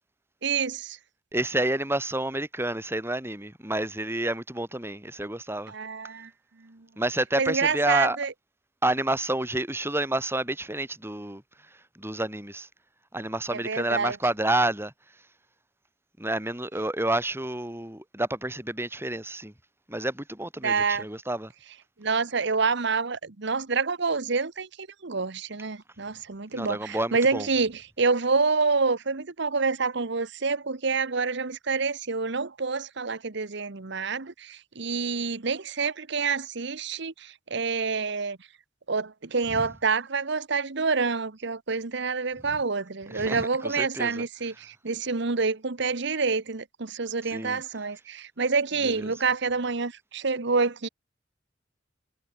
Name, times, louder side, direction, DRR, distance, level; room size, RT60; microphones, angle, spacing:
voice 1, 0.4-1.0 5.7-6.3 6.6-6.8 7.4-8.3 13.5-14.1 20.6-21.0 22.0-24.7 25.0-38.4 38.9-50.9, right 4 dB, 65° right, 1.2 m, -27 dB
voice 2, 1.3-5.7 7.0-8.2 8.8-12.7 13.1-14.9 16.2-19.5 19.9-21.5 26.5-27.5 39.5-39.7 43.1-44.3 47.3-47.6 48.8-49.1, right 1 dB, 15° right, 4.7 m, -29 dB
head